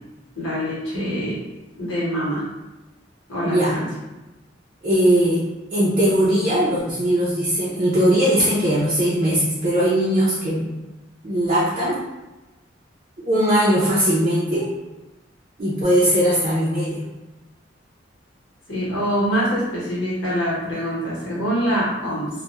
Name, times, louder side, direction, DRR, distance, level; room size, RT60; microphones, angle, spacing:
voice 1, 0.3-1.4 1.7-2.4 3.3-3.8 18.7-22.3, equal, 75° left, -8 dB, 1.0 m, -24 dB
voice 2, 3.4-3.8 4.8-5.4 5.7-10.7 11.2-12.0 13.2-14.7 15.6-17.0, equal, 35° right, -8 dB, 0.4 m, -19 dB
2.2 x 2.1 x 2.8 m, 1.1 s
head